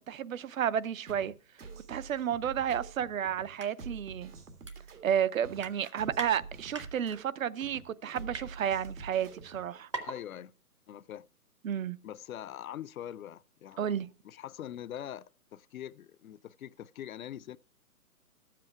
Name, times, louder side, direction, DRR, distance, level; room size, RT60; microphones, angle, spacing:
voice 1, 0.1-1.3 1.9-4.3 5.0-9.9 11.6-12.0 13.8-14.1, right 9 dB, 60° right, 0.6 m, -31 dB
sound 1, 1.1-9.7, right 4 dB, 80° right, 1.9 m, -47 dB
sound 2, 3.6-3.7 4.1-4.2 4.6-5.2 5.5-6.3 6.7-7.2 7.8-8.5 9.2-9.3 9.5-9.6 9.9-10.2 10.5-10.6, right 2 dB, 20° right, 0.5 m, -40 dB
voice 2, 10.0-10.5 10.9-11.3 12.0-17.6, left 11 dB, 65° left, 0.5 m, -43 dB
12.0 x 7.6 x 4.6 m
hypercardioid pair, 160°, 45 cm